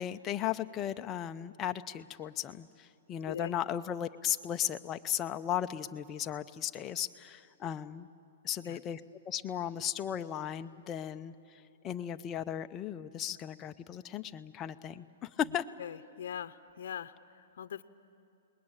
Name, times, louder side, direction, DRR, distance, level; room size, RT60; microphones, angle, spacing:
voice 1, 0.0-8.1 8.4-9.0 9.3-11.3 11.8-15.6, left 10 dB, 20° left, 8 dB, 0.6 m, -36 dB
voice 2, 15.8-17.8, left 8 dB, 70° left, 11 dB, 0.8 m, -42 dB
30.0 x 20.5 x 8.8 m, 2.7 s
hypercardioid pair, 160°, 0 cm